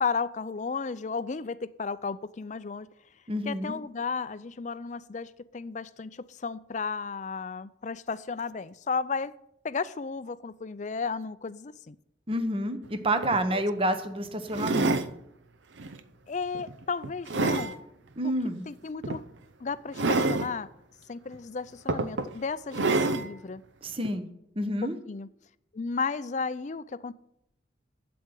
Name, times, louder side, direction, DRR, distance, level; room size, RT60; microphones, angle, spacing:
voice 1, 0.0-2.9 3.5-9.3 9.6-12.0 13.5-13.6 16.3-17.8 18.7-19.2 19.6-20.7 21.1-23.6 24.6-24.7 25.1-25.3 25.7-27.1, left 5 dB, 40° left, 16 dB, 0.4 m, -34 dB
voice 2, 3.3-3.7 12.3-14.9 18.2-18.6 23.8-24.2 24.6-25.0, right 1 dB, 30° right, 8 dB, 1.0 m, -28 dB
sound 1, 12.9-13.0 13.2-13.4 14.5-15.1 15.8-16.0 16.5-17.7 19.0-19.2 20.0-20.5 21.3-21.4 21.9-22.3 22.7-23.3 24.0-24.1, right 3 dB, 80° right, 0.7 m, -27 dB
8.2 x 7.9 x 8.8 m, 0.78 s
head